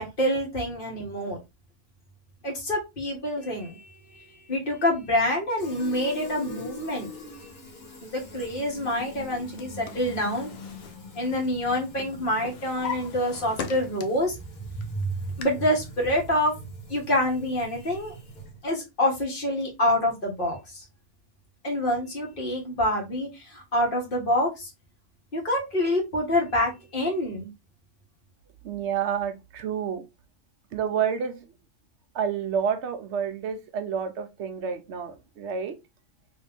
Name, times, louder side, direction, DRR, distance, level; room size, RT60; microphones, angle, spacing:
voice 1, 0.0-1.4 2.4-7.1 8.0-10.5 11.1-14.4 14.8-14.9 15.4-16.6 16.9-18.1 18.6-20.8 21.6-24.7 25.3-27.5, left 1 dB, 40° left, 1.5 m, -27 dB
Fill (with liquid), 5.6-18.7, left 2 dB, 90° left, 1.8 m, -44 dB
Drawer open or close, 9.2-11.7 12.0-14.3 14.8-15.4, left 6 dB, 60° left, 0.7 m, -39 dB
voice 2, 28.6-30.0 30.7-31.4 32.1-35.8, right 7 dB, 60° right, 0.9 m, -29 dB
3.2 x 3.0 x 3.4 m
omnidirectional pair, 1.4 m